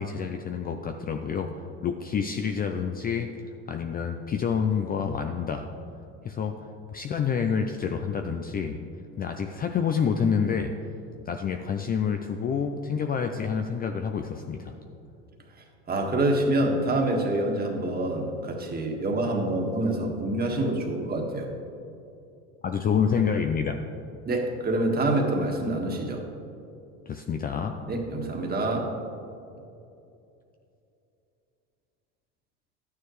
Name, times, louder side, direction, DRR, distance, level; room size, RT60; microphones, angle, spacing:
voice 1, 0.0-1.6 1.8-3.3 3.7-5.7 6.2-6.6 6.9-8.8 9.2-10.7 11.3-14.7 22.6-23.8 27.1-27.8, left 6 dB, 25° left, 6 dB, 0.5 m, -28 dB
voice 2, 15.9-21.5 24.2-26.2 27.9-28.9, right 1 dB, 25° right, 1 dB, 1.7 m, -26 dB
11.5 x 9.5 x 3.2 m, 2.7 s
supercardioid pair, 105°, 36 cm